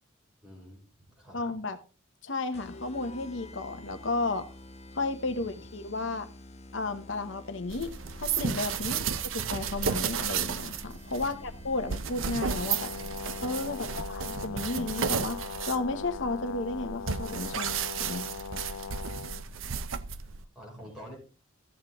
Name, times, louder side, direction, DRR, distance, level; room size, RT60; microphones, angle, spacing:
voice 1, 0.4-0.8 1.1-1.6 5.3-5.5 11.2-11.5 13.6-14.0 19.5-21.2, equal, 5° right, -3 dB, 5.6 m, -50 dB
voice 2, 1.3-1.8 2.2-4.4 4.9-6.3 6.7-7.9 8.2-9.1 9.3-12.9 13.4-18.3, left 3 dB, 70° left, 8 dB, 1.1 m, -33 dB
sound 1, 2.5-13.9, left 1 dB, 35° left, 0.9 m, -49 dB
sound 2, 7.7-20.4, right 7 dB, 85° right, 0.7 m, -33 dB
Brass instrument, 12.5-19.4, left 6 dB, 85° left, 0.4 m, -40 dB
13.5 x 8.1 x 3.7 m, 0.33 s
head